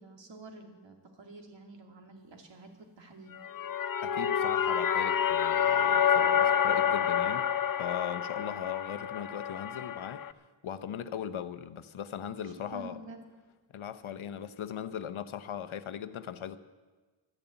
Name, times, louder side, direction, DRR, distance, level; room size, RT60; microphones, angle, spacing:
voice 1, 0.0-2.7 3.0-3.4 12.7-13.2, right 2 dB, 65° right, 3 dB, 2.4 m, -48 dB
sound 1, 3.4-10.3, left 8 dB, 45° left, 0.5 m, -28 dB
voice 2, 4.0-7.5 7.8-10.2 10.6-13.0 13.7-16.6, left 9 dB, 85° left, 10 dB, 0.9 m, -39 dB
12.5 x 11.0 x 8.9 m, 1.3 s
wide cardioid pair, 160°, 47 cm